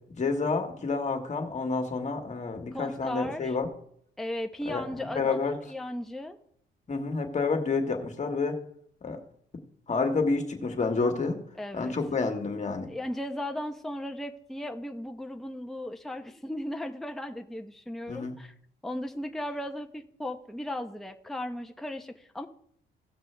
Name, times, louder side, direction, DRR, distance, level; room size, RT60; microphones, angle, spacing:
voice 1, 0.1-3.7 4.7-5.6 6.9-8.6 9.0-9.2 9.9-11.4 11.7-12.9 18.1-18.3, left 4 dB, 35° left, 4 dB, 1.8 m, -29 dB
voice 2, 2.7-3.6 4.2-6.4 11.6-11.9 12.9-18.5 18.8-22.5, left 1 dB, ahead, 5 dB, 0.8 m, -36 dB
16.5 x 6.0 x 3.3 m, 0.66 s
cardioid pair, 90°, 20 cm